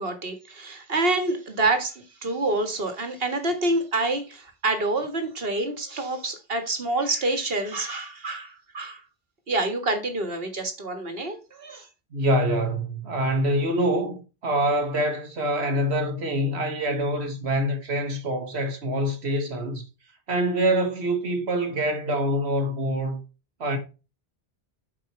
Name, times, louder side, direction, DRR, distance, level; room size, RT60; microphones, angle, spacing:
voice 1, 0.0-9.0 9.5-11.9, right 2 dB, 65° right, 2.0 m, -27 dB
voice 2, 12.1-19.8 20.3-23.2 23.6-23.8, right 1 dB, 90° right, 1.9 m, -25 dB
7.7 x 5.3 x 4.4 m
omnidirectional pair, 1.1 m